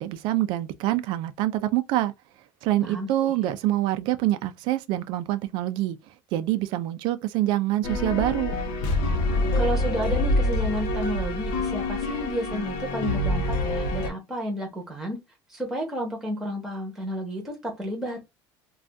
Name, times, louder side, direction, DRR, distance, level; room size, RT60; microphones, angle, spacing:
voice 1, 0.0-2.1 2.6-6.0 6.3-8.5, right 14 dB, 55° right, 0.4 m, -25 dB
sound 1, 7.8-14.1, left 1 dB, 85° left, 0.7 m, -26 dB
voice 2, 9.5-15.2 15.5-18.2, equal, 5° right, 1.0 m, -31 dB
2.5 x 2.3 x 3.4 m
cardioid pair, 180°, 10 cm